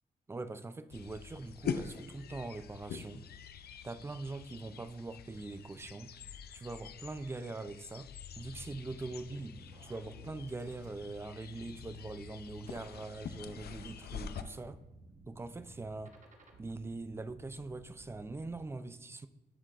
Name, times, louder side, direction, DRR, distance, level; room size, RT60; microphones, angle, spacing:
voice 1, 0.3-3.2 3.8-6.1 6.5-8.1 8.3-9.5 9.8-14.8 15.3-16.1 16.6-19.3, right 3 dB, 15° right, 12 dB, 0.3 m, -42 dB
sound 1, 0.9-14.4, left 7 dB, 65° left, 0.5 m, -45 dB
sound 2, 8.5-18.7, right 2 dB, 45° right, 1.1 m, -57 dB
12.0 x 7.3 x 2.5 m, 1.0 s
wide cardioid pair, 150°, 17 cm